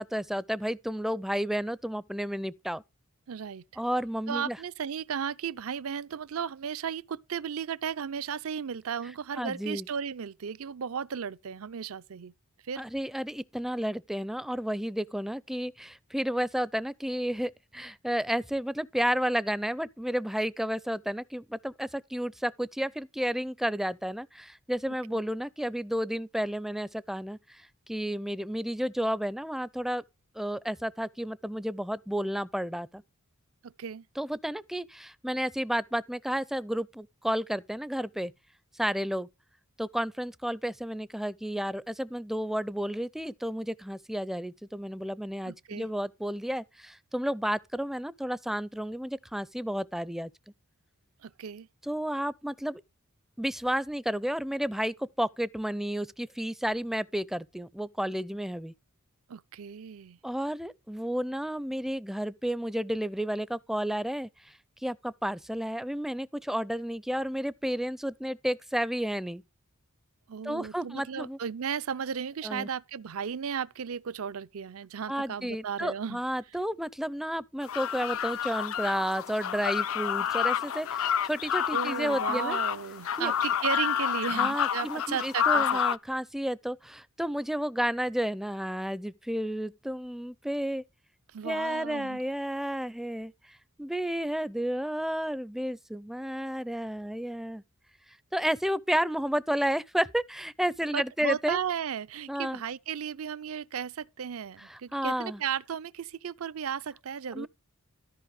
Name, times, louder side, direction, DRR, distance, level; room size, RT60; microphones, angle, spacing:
voice 1, 0.0-2.8 3.8-4.6 9.4-9.9 12.8-30.0 30.4-33.0 34.2-38.3 38.7-39.3 39.8-50.3 51.8-52.8 53.4-58.7 60.2-64.5 64.8-69.4 70.4-71.4 72.4-72.7 75.1-82.6 83.2-83.3 84.3-90.8 91.4-97.6 98.3-101.6 102.3-102.6 104.6-105.4 107.3-107.5, equal, ahead, 0.4 m, -32 dB
voice 2, 3.3-3.6 4.3-12.3 12.6-12.8 25.1-25.2 33.6-34.0 45.5-45.9 51.2-51.7 59.3-60.2 70.3-76.2 81.7-85.8 91.3-92.2 100.9-107.5, right 7 dB, 70° right, 0.5 m, -35 dB
sound 1, 77.6-86.0, left 9 dB, 65° left, 0.4 m, -29 dB
13.5 x 5.3 x 4.8 m
head